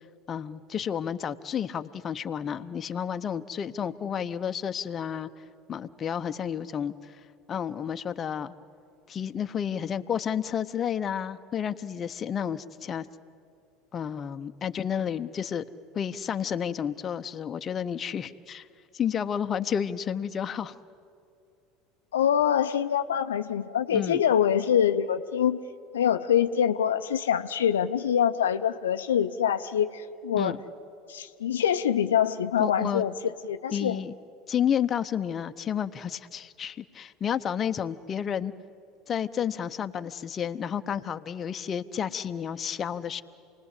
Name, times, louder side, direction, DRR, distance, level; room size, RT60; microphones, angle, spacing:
voice 1, 0.3-5.3 5.7-7.2 7.5-8.5 9.1-13.1 13.9-15.6 15.9-18.7 18.9-20.7 23.9-24.2 30.4-30.6 32.6-33.0 33.7-34.1 34.5-38.5 39.1-43.2, left 8 dB, 35° left, 9 dB, 0.8 m, -31 dB
voice 2, 22.1-25.6 25.9-30.6 31.1-33.1 33.4-34.0, left 9 dB, 85° left, 8 dB, 0.6 m, -25 dB
28.0 x 19.5 x 8.4 m, 2.5 s
hypercardioid pair, 80°, 0 cm